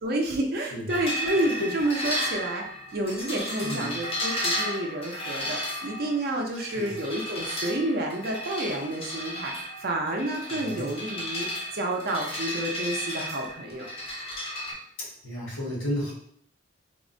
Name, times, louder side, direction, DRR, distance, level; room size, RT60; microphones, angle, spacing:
voice 1, 0.0-2.6 2.9-9.5 9.8-11.5 11.7-13.9, right 1 dB, 50° right, 1 dB, 0.5 m, -29 dB
sound 1, 0.9-14.7, equal, 30° left, 0.5 m, -34 dB
voice 2, 3.6-3.9 6.7-6.9 10.5-10.9 15.0-16.1, left 1 dB, 85° left, -6 dB, 1.4 m, -32 dB
3.5 x 2.1 x 2.5 m, 0.67 s
head